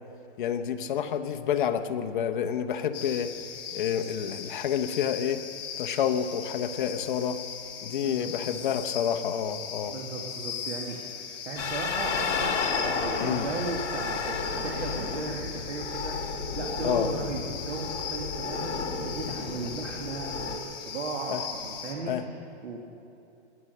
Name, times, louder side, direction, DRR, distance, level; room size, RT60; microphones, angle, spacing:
voice 1, 0.4-3.3 3.7-5.4 5.8-7.4 7.8-9.9 13.2-13.5 16.8-17.1 21.3-21.4 22.1-22.3, left 8 dB, 45° left, 7 dB, 0.8 m, -29 dB
sound 1, 2.9-21.9, left 7 dB, 15° left, 0.8 m, -39 dB
voice 2, 8.0-8.6 9.9-22.1 22.6-22.8, right 3 dB, 75° right, 0 dB, 1.9 m, -36 dB
sound 2, 11.6-20.6, left 4 dB, 70° left, 2.2 m, -32 dB
20.5 x 8.5 x 6.6 m, 2.8 s
hypercardioid pair, 165°, 35 cm